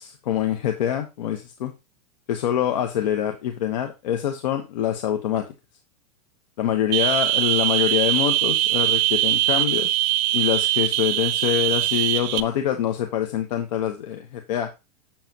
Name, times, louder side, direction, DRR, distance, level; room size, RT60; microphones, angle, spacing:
voice 1, 0.0-1.7 2.3-5.5 6.6-10.0 10.3-14.7, left 10 dB, 80° left, 5 dB, 1.2 m, -25 dB
sound 1, 6.9-12.4, right 15 dB, 55° right, 0.8 m, -22 dB
7.4 x 7.3 x 2.9 m, 0.25 s
supercardioid pair, 135°, 21 cm